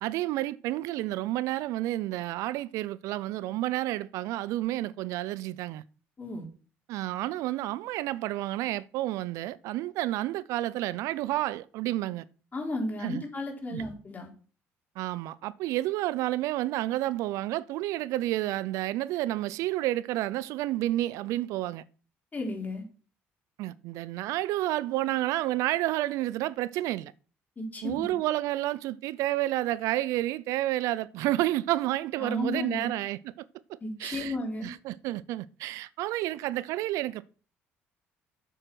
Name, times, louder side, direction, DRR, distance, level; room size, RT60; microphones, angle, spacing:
voice 1, 0.0-5.8 6.9-12.2 13.0-13.2 13.7-13.8 15.0-21.8 23.6-27.1 27.8-33.3 33.7-34.4 34.6-37.2, right 15 dB, 80° right, 0.4 m, -30 dB
voice 2, 6.2-6.5 12.5-14.3 22.3-22.8 27.6-28.2 32.2-32.9 33.8-34.7, left 1 dB, 30° left, 4.0 m, -34 dB
7.7 x 7.7 x 6.2 m
supercardioid pair, 80°, 5 cm